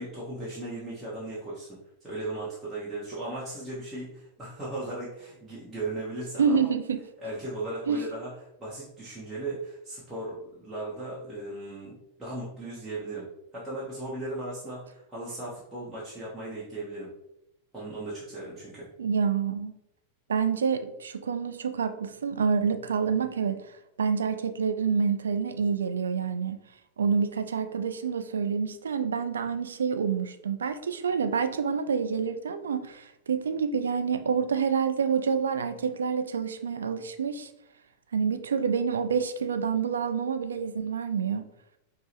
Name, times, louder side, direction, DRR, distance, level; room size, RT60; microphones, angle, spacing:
voice 1, 0.0-6.7 7.2-13.3 13.5-17.1 17.7-18.9, right 2 dB, 10° right, -9 dB, 1.0 m, -37 dB
voice 2, 6.4-7.0 7.9-8.0 19.0-19.7 20.3-23.6 24.0-26.6 27.0-37.5 38.1-41.5, right 6 dB, 70° right, 9 dB, 0.3 m, -27 dB
5.3 x 2.0 x 2.7 m, 0.83 s
figure-of-eight pair, 90°, 0 cm